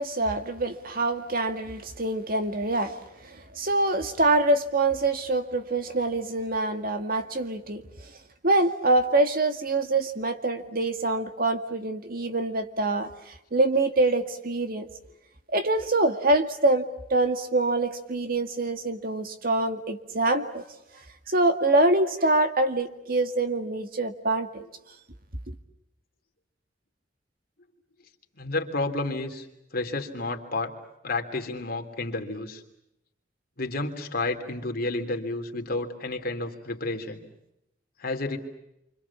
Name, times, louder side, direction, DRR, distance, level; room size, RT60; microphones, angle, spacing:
voice 1, 0.0-7.8 8.4-14.9 15.5-20.6 21.3-24.6 25.5-25.6, right 2 dB, 55° right, 7 dB, 2.1 m, -25 dB
voice 2, 28.4-29.5 29.7-30.7 31.0-32.6 33.6-37.2 38.0-38.4, left 2 dB, 55° left, 4 dB, 3.2 m, -31 dB
28.5 x 25.5 x 7.3 m, 0.84 s
head